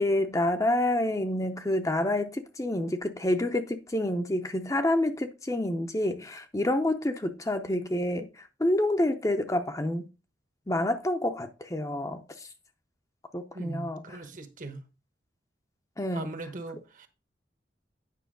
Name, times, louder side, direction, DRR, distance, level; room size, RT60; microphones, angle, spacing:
voice 1, 0.0-8.3 8.6-10.1 10.7-12.5 13.3-14.2 16.0-16.3, left 1 dB, 20° left, 0.6 m, -28 dB
voice 2, 13.5-14.8 16.1-17.1, right 2 dB, 45° right, 1.0 m, -40 dB
9.2 x 5.6 x 3.8 m
head